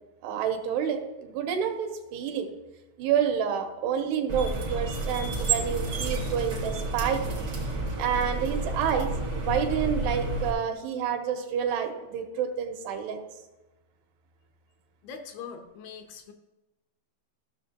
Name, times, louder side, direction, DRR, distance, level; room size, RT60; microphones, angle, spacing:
voice 1, 0.2-2.5 3.0-7.2 8.0-13.2, right 8 dB, 90° right, 6 dB, 3.0 m, -29 dB
sound 1, 4.3-10.5, right 2 dB, 65° right, 0.9 m, -30 dB
voice 2, 15.0-16.3, left 6 dB, 75° left, 5 dB, 2.4 m, -42 dB
15.0 x 6.5 x 2.8 m, 1.1 s
omnidirectional pair, 4.7 m